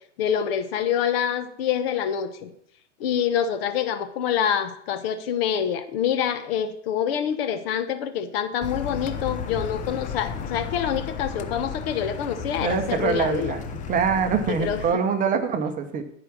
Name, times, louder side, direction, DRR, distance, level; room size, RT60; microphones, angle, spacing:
voice 1, 0.2-2.5 3.0-13.5 14.6-14.8, left 8 dB, 55° left, 10 dB, 1.0 m, -26 dB
Car, 8.6-14.9, left 6 dB, 20° left, 0.7 m, -34 dB
voice 2, 12.6-13.6 13.9-16.0, right 6 dB, 25° right, 7 dB, 0.9 m, -24 dB
11.0 x 4.9 x 6.0 m, 0.70 s
hypercardioid pair, 120°, 35 cm